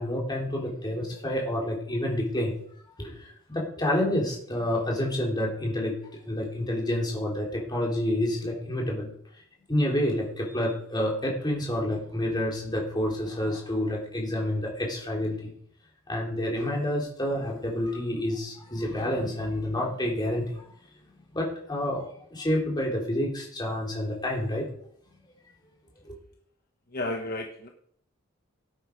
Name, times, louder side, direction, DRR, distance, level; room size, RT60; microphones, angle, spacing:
voice 1, 0.0-2.5 3.0-5.9 6.2-9.1 9.7-15.5 16.1-20.7 21.3-24.7 26.0-26.1, left 1 dB, 20° left, -2 dB, 3.4 m, -29 dB
voice 2, 26.9-27.7, left 1 dB, 45° left, 2 dB, 1.2 m, -32 dB
17.0 x 9.0 x 4.7 m, 0.69 s
head